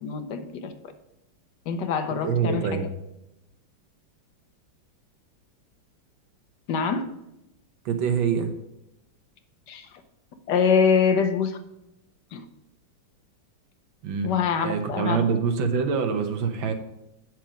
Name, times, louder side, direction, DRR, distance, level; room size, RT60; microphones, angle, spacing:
voice 1, 0.0-0.7 1.7-2.8 6.7-7.0 9.7-9.9 10.5-11.6 12.3-12.4 14.2-15.2, left 6 dB, 65° left, 8 dB, 1.3 m, -24 dB
voice 2, 2.2-2.8 7.8-8.5 14.0-14.3 14.6-16.7, right 6 dB, 75° right, 6 dB, 1.7 m, -25 dB
8.5 x 6.2 x 5.0 m, 0.88 s
omnidirectional pair, 2.2 m